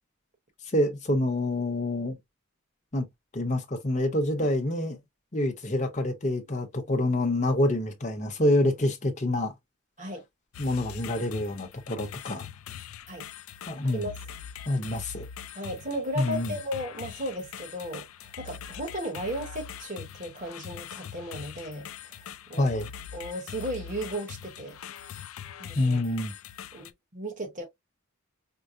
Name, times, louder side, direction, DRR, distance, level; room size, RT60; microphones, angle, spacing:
voice 1, 0.7-2.2 2.9-3.1 3.3-5.0 5.3-9.5 10.6-12.5 13.7-14.1 14.7-15.3 16.2-16.5 22.6-22.9 25.8-26.3, left 1 dB, 35° left, 0.8 m, -27 dB
sound 1, 10.5-26.9, left 8 dB, 70° left, 0.4 m, -43 dB
voice 2, 15.5-22.7 23.1-24.8 25.6-26.0 26.7-27.7, equal, 35° right, 1.0 m, -35 dB
4.5 x 2.0 x 2.5 m
head